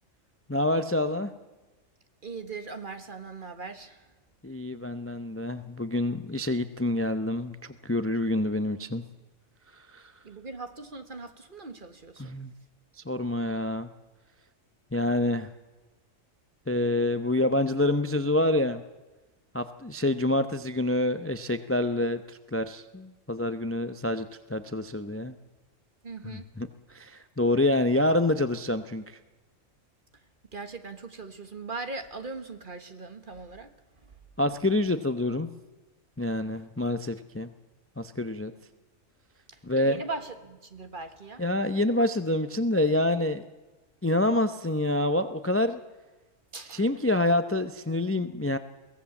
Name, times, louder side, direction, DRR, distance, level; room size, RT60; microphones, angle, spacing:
voice 1, 0.5-1.3 4.4-9.0 9.8-10.1 12.2-12.5 13.0-13.9 14.9-15.5 16.7-18.8 19.5-25.3 26.2-29.2 34.4-35.5 36.2-37.5 38.0-38.5 39.6-40.0 41.4-43.5 44.0-45.8 46.7-48.6, left 1 dB, 15° left, 10 dB, 0.7 m, -27 dB
voice 2, 2.2-4.0 10.2-12.3 26.0-26.5 30.5-33.7 36.5-36.6 39.5-41.4 46.5-46.8, right 3 dB, 40° right, 8 dB, 1.7 m, -40 dB
23.0 x 17.0 x 7.2 m, 1.1 s
omnidirectional pair, 1.4 m